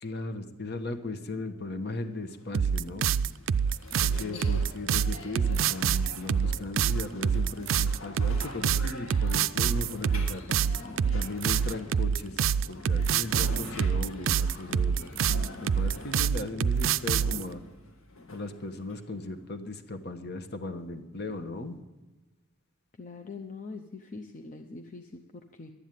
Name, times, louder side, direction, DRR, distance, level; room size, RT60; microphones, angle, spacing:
voice 1, 0.0-3.1 4.0-10.4 11.1-12.4 12.7-15.1 15.6-17.6 18.3-21.8, left 2 dB, 55° left, 9 dB, 1.2 m, -37 dB
sound 1, 2.3-19.4, left 3 dB, 75° left, 1.9 m, -45 dB
sound 2, 2.5-17.4, right 7 dB, 65° right, 0.4 m, -26 dB
voice 2, 3.9-4.4 23.0-25.7, left 4 dB, 40° left, 6 dB, 0.7 m, -43 dB
11.5 x 10.0 x 9.2 m, 1.2 s
head